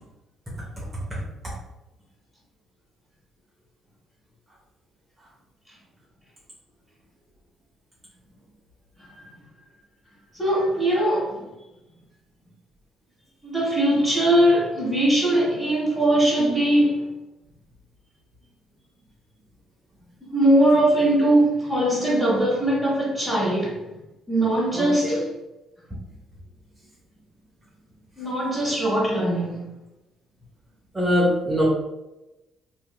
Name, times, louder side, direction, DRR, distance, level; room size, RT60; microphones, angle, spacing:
voice 1, 1.1-1.6 24.7-25.2 30.9-31.6, equal, 25° right, -5 dB, 0.8 m, -24 dB
voice 2, 9.0-9.3 10.3-11.4 13.4-17.1 20.2-23.8 24.3-25.2 28.2-29.6, right 1 dB, 5° left, -10 dB, 1.5 m, -21 dB
2.8 x 2.5 x 2.2 m, 0.99 s
hypercardioid pair, 55°, 0 cm